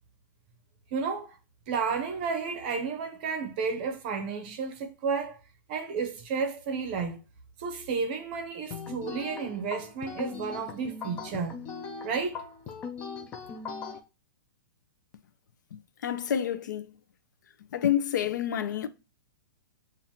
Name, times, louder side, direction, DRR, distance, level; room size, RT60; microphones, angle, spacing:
voice 1, 0.9-1.4 1.7-5.4 5.7-7.2 7.6-11.6 12.0-12.4, right 5 dB, 30° right, 0.7 m, -32 dB
sound 1, 8.7-14.0, left 5 dB, 10° left, 0.3 m, -39 dB
voice 2, 15.7-17.0 17.7-18.9, left 9 dB, 55° left, 0.6 m, -29 dB
7.1 x 2.5 x 2.8 m
hypercardioid pair, 175°, 11 cm